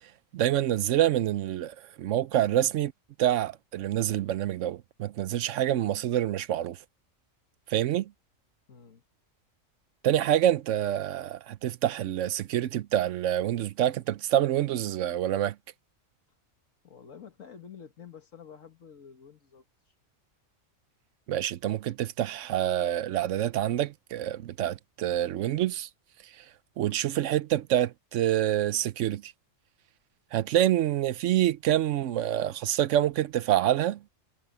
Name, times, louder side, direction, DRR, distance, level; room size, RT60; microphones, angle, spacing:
voice 1, 0.3-2.9 3.2-6.8 7.7-8.1 10.0-15.6 21.3-25.9 26.4-26.5 26.8-29.3 30.3-34.0, right 12 dB, 70° right, 0.9 m, -27 dB
voice 2, 8.7-9.0 16.8-19.6, left 7 dB, 75° left, 2.0 m, -49 dB
omnidirectional pair, 1.4 m